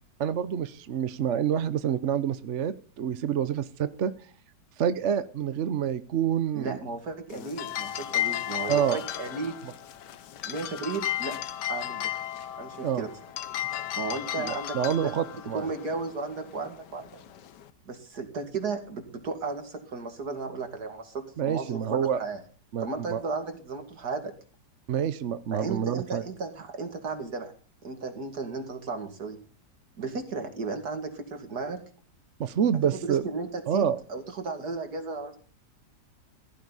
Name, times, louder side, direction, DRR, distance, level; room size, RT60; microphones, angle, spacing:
voice 1, 0.2-4.1 4.8-6.8 8.7-9.0 12.8-13.0 14.4-15.7 21.4-22.2 22.7-23.2 24.9-26.2 32.4-33.3 33.7-34.0, right 8 dB, 55° right, 12 dB, 1.0 m, -27 dB
voice 2, 6.5-9.7 10.4-11.4 11.7-12.1 12.6-13.1 14.0-15.1 15.5-17.2 17.9-22.4 22.8-24.3 25.5-27.5 27.8-29.4 30.0-31.8 33.0-35.4, right 4 dB, 70° right, 5 dB, 2.9 m, -34 dB
sound 1, 7.3-17.7, left 12 dB, 90° left, 1.5 m, -35 dB
15.5 x 14.5 x 4.1 m, 0.40 s
omnidirectional pair, 1.8 m